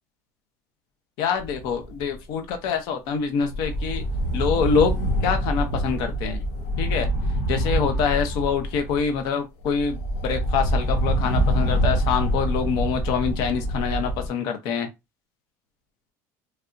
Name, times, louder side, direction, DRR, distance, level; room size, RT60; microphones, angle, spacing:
voice 1, 1.2-4.0 4.3-4.9 5.2-6.4 6.8-7.1 7.5-14.9, left 6 dB, 60° left, 0.8 m, -25 dB
sound 1, 1.4-2.1 2.5-2.7 3.4-9.2 9.6-14.3, right 1 dB, 85° left, 1.2 m, -25 dB
3.3 x 2.7 x 2.5 m
cardioid pair, 135°, 8 cm